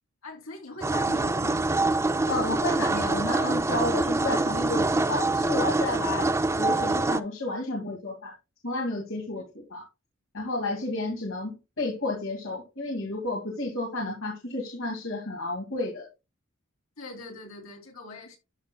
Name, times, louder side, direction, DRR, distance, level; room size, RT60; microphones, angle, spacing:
voice 1, 0.2-1.7 9.3-9.4 17.0-18.4, left 2 dB, 85° left, 3.2 m, -42 dB
sound 1, 0.8-7.2, right 2 dB, 15° right, 0.4 m, -25 dB
voice 2, 2.3-6.3 6.6-8.3 8.6-9.8 10.3-16.1, left 2 dB, 70° left, 2.3 m, -31 dB
12.5 x 6.1 x 2.3 m
head